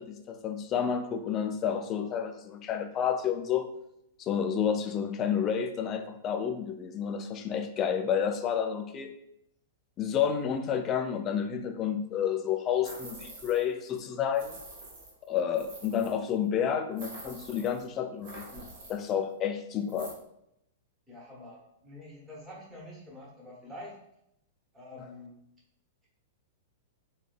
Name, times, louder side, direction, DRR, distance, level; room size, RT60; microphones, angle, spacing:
voice 1, 0.0-3.7 4.2-9.2 10.0-14.6 15.3-20.1, left 8 dB, 30° left, 7 dB, 0.3 m, -30 dB
sound 1, 12.8-13.7 14.0-14.1 14.3-16.2 17.0-17.8 18.2-19.1 19.9-20.1, right 2 dB, 50° right, 0.8 m, -46 dB
voice 2, 21.1-23.9 24.7-25.4, left 1 dB, 15° right, -6 dB, 1.2 m, -46 dB
3.6 x 2.2 x 2.4 m, 0.79 s
figure-of-eight pair, 100°, 0 cm